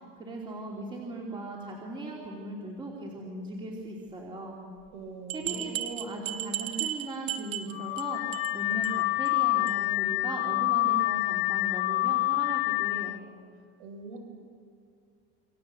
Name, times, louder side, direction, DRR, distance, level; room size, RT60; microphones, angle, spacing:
voice 1, 0.0-4.6 5.3-13.2, right 2 dB, 15° right, -2 dB, 3.1 m, -38 dB
sound 1, 4.9-5.0 5.3-8.0 8.3-8.6 8.8-8.9 9.3-9.4 9.7-9.8, right 12 dB, 40° right, 1.4 m, -34 dB
voice 2, 4.9-5.9 13.8-14.2, right 2 dB, 85° right, 5 dB, 5.7 m, -42 dB
Car / Alarm, 7.7-13.2, left 20 dB, 85° left, 0.9 m, -27 dB
28.0 x 25.5 x 7.8 m, 2.3 s
cardioid pair, 170°, 32 cm